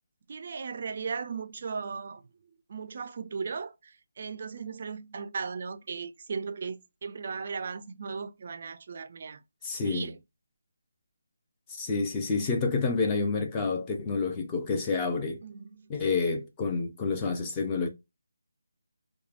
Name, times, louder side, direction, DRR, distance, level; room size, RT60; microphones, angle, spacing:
voice 1, 0.3-2.3 2.7-9.4 9.8-10.2 15.4-16.0, right 5 dB, 45° right, 0.4 m, -37 dB
voice 2, 9.6-10.1 11.8-15.4 15.9-17.9, left 4 dB, 15° left, 0.6 m, -28 dB
3.1 x 2.2 x 2.4 m
figure-of-eight pair, 165°, 0 cm